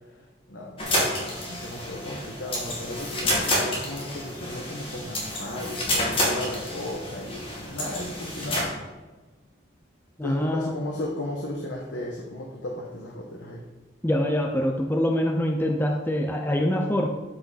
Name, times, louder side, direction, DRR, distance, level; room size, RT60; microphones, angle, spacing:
voice 1, 0.5-8.8 10.2-13.6, left 1 dB, 80° left, -1 dB, 1.3 m, -35 dB
sound 1, 0.8-8.6, left 1 dB, 30° left, 2.1 m, -29 dB
voice 2, 10.2-10.8 14.0-17.1, equal, 10° left, 3 dB, 0.6 m, -24 dB
12.5 x 6.0 x 4.2 m, 1.3 s
head